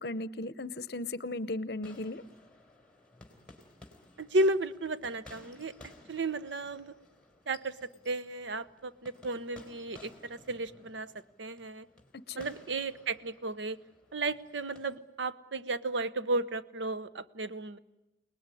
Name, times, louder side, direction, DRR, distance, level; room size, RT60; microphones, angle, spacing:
voice 1, 0.0-2.2 12.3-12.5, left 2 dB, 60° left, 16 dB, 0.8 m, -36 dB
sound 1, 1.8-15.0, left 2 dB, 5° left, 4.0 m, -57 dB
voice 2, 4.2-5.7 6.1-6.9 7.5-7.8 8.0-11.1 11.4-11.9 12.3-13.8 14.1-17.8, right 2 dB, 80° right, 14 dB, 0.9 m, -33 dB
28.5 x 19.5 x 9.9 m, 1.1 s
head